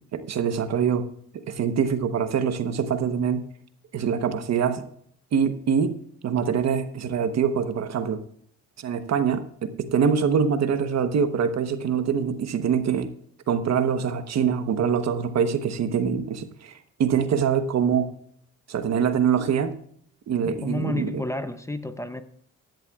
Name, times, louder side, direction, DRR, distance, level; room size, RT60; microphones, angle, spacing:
voice 1, 0.1-1.1 1.5-3.4 3.9-4.8 5.3-6.0 6.2-8.2 8.8-13.1 13.5-18.1 18.7-19.8 20.3-21.2, right 7 dB, 60° right, 1.1 m, -24 dB
voice 2, 20.4-22.2, left 2 dB, 10° left, 0.7 m, -31 dB
16.0 x 10.5 x 2.4 m
cardioid pair, 90°, 30 cm